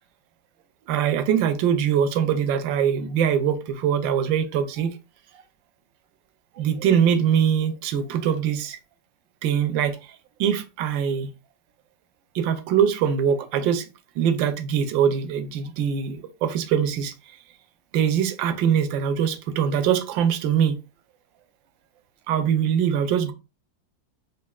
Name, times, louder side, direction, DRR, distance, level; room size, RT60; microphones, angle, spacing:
voice 1, 0.9-4.9 6.6-8.8 9.4-10.0 10.4-11.3 12.3-13.9 14.2-17.1 17.9-20.7 22.3-23.3, right 8 dB, 80° right, 1.3 m, -22 dB
5.1 x 2.6 x 2.3 m
omnidirectional pair, 2.1 m